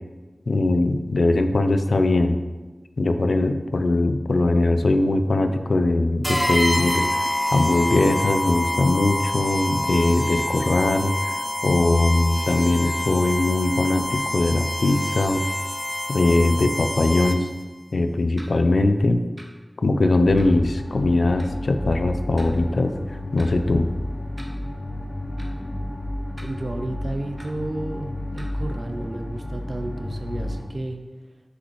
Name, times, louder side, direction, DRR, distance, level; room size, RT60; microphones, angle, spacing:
voice 1, 0.5-2.4 3.0-7.2 7.5-15.5 16.1-17.5 17.9-19.2 19.8-22.9 23.3-23.9, left 2 dB, 80° left, 8 dB, 0.4 m, -21 dB
sound 1, 6.2-17.6, left 1 dB, 5° left, 0.5 m, -27 dB
sound 2, 18.4-18.5 19.4-19.5 20.4-20.5 21.4-21.5 22.4-22.5 23.4-23.5 24.4-24.5 25.4-25.5 26.4-26.5 27.4-27.5 28.4-28.5, right 1 dB, 30° right, 0.9 m, -44 dB
sound 3, 20.2-30.7, left 1 dB, 40° left, 0.8 m, -32 dB
voice 2, 26.4-31.0, right 1 dB, 50° right, 5 dB, 0.6 m, -32 dB
6.5 x 4.9 x 3.2 m, 1.2 s
wide cardioid pair, 75°, 0 cm